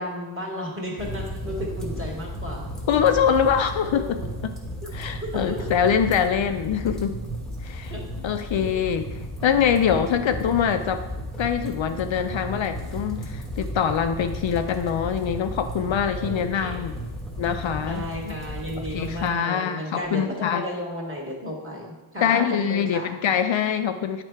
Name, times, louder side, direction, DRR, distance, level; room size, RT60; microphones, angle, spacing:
voice 1, 0.0-2.7 3.8-4.3 5.2-5.7 7.9-8.0 8.6-8.9 16.1-16.8 17.7-23.1, equal, 25° right, -2 dB, 1.8 m, -33 dB
sound 1, 1.0-19.3, equal, ahead, 1.3 m, -34 dB
voice 2, 2.9-4.2 4.4-4.5 4.9-7.2 7.6-7.9 8.2-9.1 9.4-11.0 11.4-17.0 17.4-18.0 18.8-20.6 22.2-24.2, left 8 dB, 65° left, 8 dB, 0.5 m, -24 dB
8.9 x 3.3 x 4.5 m, 1.1 s
wide cardioid pair, 85°, 50 cm